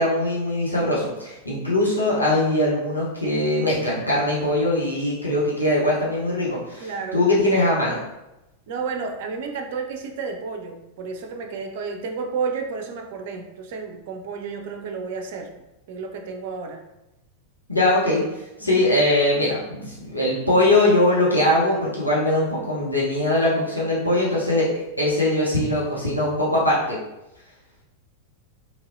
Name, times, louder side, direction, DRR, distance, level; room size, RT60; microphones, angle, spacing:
voice 1, 0.0-8.0 17.7-18.2 18.6-27.0, left 1 dB, 85° left, -7 dB, 0.7 m, -21 dB
voice 2, 6.8-7.5 8.7-15.5 15.9-16.8 18.6-18.9, right 5 dB, 50° right, 4 dB, 0.4 m, -31 dB
3.0 x 2.6 x 2.6 m, 0.93 s
figure-of-eight pair, 90°, 0 cm